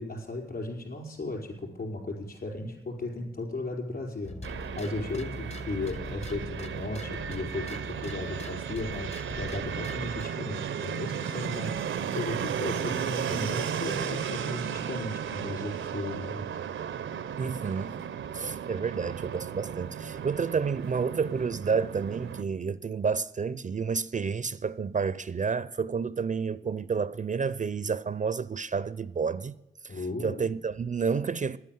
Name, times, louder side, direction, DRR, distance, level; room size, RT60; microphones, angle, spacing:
voice 1, 0.0-16.4 29.9-30.5, left 2 dB, 50° left, 5.1 m, -36 dB
sound 1, 4.2-10.4, left 1 dB, 35° left, 1.0 m, -42 dB
Fixed-wing aircraft airplane, 4.4-22.4, right 8 dB, 80° right, 0.6 m, -35 dB
voice 2, 17.4-18.0 18.3-29.5 30.2-31.6, right 5 dB, 40° right, 0.5 m, -30 dB
10.5 x 9.4 x 9.3 m
cardioid pair, 65°, 20 cm